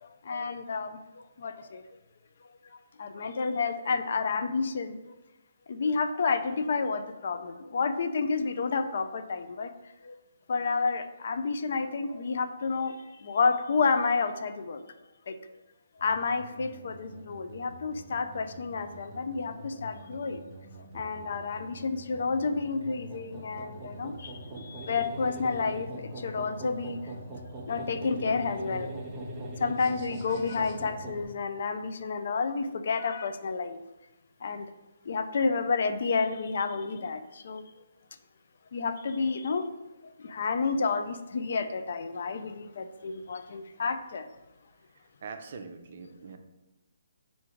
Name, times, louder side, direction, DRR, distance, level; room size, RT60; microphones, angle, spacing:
voice 1, 0.0-1.9 3.0-5.0 5.7-9.7 10.0-10.2 10.5-14.8 15.3-15.4 16.0-20.4 20.9-27.1 27.7-28.9 29.6-33.8 34.4-34.7 35.1-37.6 38.7-39.7 40.2-44.3, left 4 dB, 60° left, 9 dB, 0.4 m, -30 dB
sound 1, 16.0-31.2, right 1 dB, 20° right, 1.0 m, -42 dB
voice 2, 24.5-24.8 27.5-27.6 43.7-43.8 45.2-46.4, right 5 dB, 55° right, 6 dB, 0.5 m, -44 dB
3.6 x 2.6 x 4.4 m, 1.0 s
hypercardioid pair, 150°, 0 cm